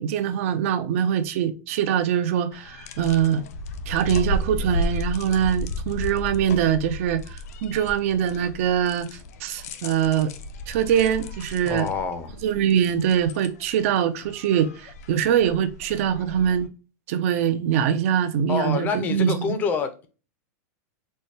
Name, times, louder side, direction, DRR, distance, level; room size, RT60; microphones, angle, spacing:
voice 1, 0.0-3.4 3.9-9.1 9.4-10.3 10.7-11.9 12.4-16.7 17.1-19.3, right 9 dB, 50° right, 0.5 m, -23 dB
sound 1, 2.5-16.7, left 1 dB, 65° left, 0.5 m, -34 dB
voice 2, 11.7-12.4 18.5-20.1, left 5 dB, 20° left, 0.5 m, -27 dB
4.3 x 2.2 x 3.1 m
supercardioid pair, 160°, 9 cm